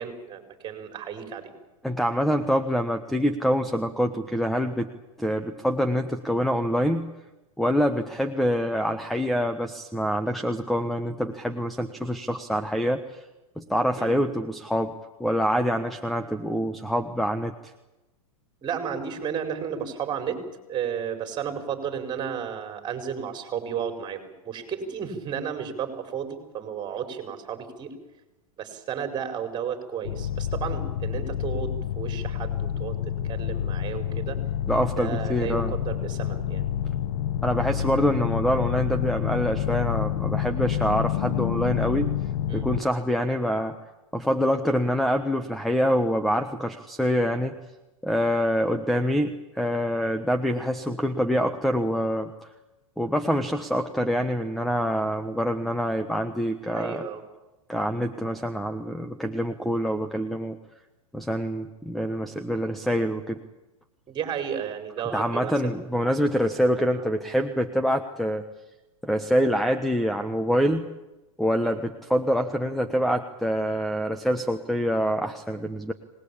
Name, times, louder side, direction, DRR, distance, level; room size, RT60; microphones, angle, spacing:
voice 1, 0.0-1.5 14.0-14.1 18.6-20.4 20.7-27.9 28.6-33.0 33.3-34.4 35.0-36.7 39.2-39.3 42.5-42.6 56.7-57.2 64.1-65.7 71.6-71.8, right 7 dB, 25° right, 6 dB, 4.9 m, -33 dB
voice 2, 1.8-4.9 5.2-7.1 7.6-13.2 13.6-14.9 15.2-17.7 34.7-35.7 37.4-42.1 42.5-43.8 44.1-47.6 48.0-52.3 53.0-57.0 57.7-60.6 61.1-63.4 65.1-68.5 69.0-70.9 71.4-75.9, equal, ahead, 8 dB, 1.2 m, -25 dB
sound 1, 30.0-42.8, left 10 dB, 60° left, 1.7 m, -28 dB
26.0 x 19.5 x 8.7 m, 1.0 s
hypercardioid pair, 120°, 18 cm